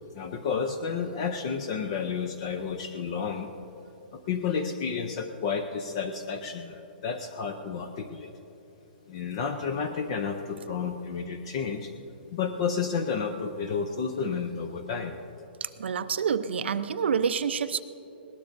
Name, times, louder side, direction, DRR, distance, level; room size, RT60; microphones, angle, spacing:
voice 1, 0.1-3.5 4.1-8.3 9.1-11.9 12.3-15.2, left 6 dB, 30° left, 7 dB, 0.6 m, -31 dB
voice 2, 15.6-17.8, right 7 dB, 90° right, 11 dB, 0.7 m, -28 dB
20.5 x 18.5 x 2.6 m, 2.9 s
hypercardioid pair, 175°, 6 cm